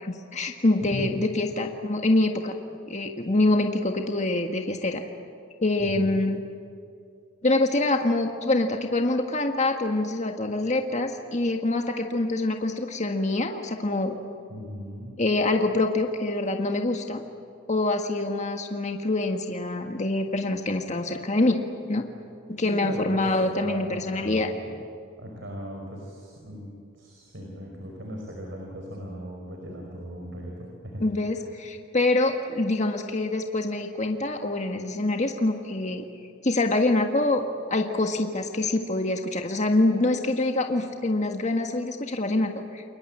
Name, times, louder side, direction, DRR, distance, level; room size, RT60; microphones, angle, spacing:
voice 1, 0.0-2.5 2.9-5.0 5.6-6.4 7.4-14.2 15.2-17.2 17.7-21.6 21.9-22.0 22.5-24.5 31.0-36.0 36.4-37.4 37.7-42.8, left 2 dB, 35° left, 4 dB, 1.7 m, -25 dB
voice 2, 0.8-1.1 5.8-6.2 14.5-15.2 22.6-24.8 25.2-31.6, equal, 60° right, 0 dB, 5.2 m, -38 dB
30.0 x 22.0 x 8.9 m, 2.5 s
head